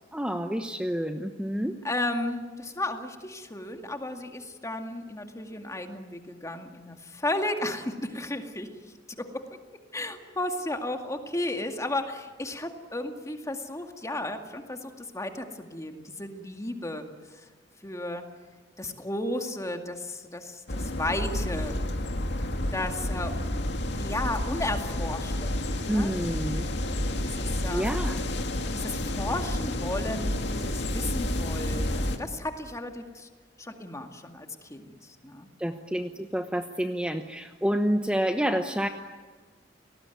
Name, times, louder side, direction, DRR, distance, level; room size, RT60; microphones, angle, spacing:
voice 1, 0.1-1.8 25.9-26.7 27.7-28.2 35.6-38.9, equal, 5° right, 6 dB, 1.0 m, -28 dB
voice 2, 1.8-8.7 9.9-17.0 17.8-18.2 18.8-21.8 22.7-23.3 24.0-25.6 25.9-26.2 27.2-27.9 28.7-33.3 33.6-35.5, left 1 dB, 15° left, 5 dB, 2.2 m, -34 dB
sound 1, 20.7-32.2, left 1 dB, 65° left, 2.4 m, -30 dB
30.0 x 19.5 x 9.3 m, 1.4 s
head